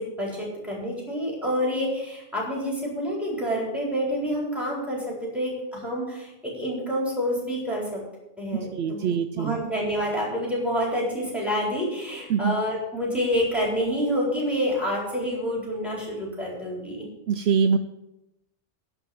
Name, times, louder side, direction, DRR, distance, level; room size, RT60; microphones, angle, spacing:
voice 1, 0.0-8.0 8.4-17.1, equal, ahead, -3 dB, 4.1 m, -28 dB
voice 2, 8.7-9.6 12.3-12.5 17.3-17.8, right 6 dB, 70° right, 10 dB, 0.8 m, -23 dB
11.5 x 5.4 x 7.8 m, 0.90 s
omnidirectional pair, 1.2 m